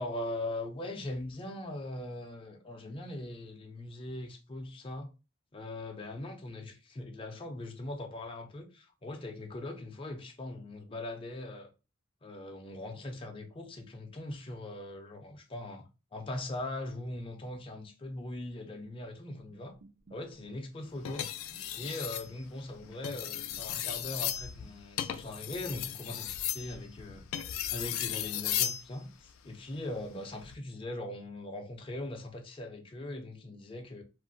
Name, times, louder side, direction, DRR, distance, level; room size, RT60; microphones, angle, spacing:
voice 1, 0.0-5.1 5.5-11.7 12.2-19.8 20.1-21.3 21.8-27.3 27.7-34.0, left 1 dB, 25° left, 0.5 m, -40 dB
sound 1, 19.3-27.6, right 3 dB, 60° right, 0.6 m, -60 dB
sound 2, 21.1-22.3 22.9-28.8 30.3-30.6, left 11 dB, 85° left, 0.3 m, -35 dB
2.4 x 2.1 x 3.7 m
head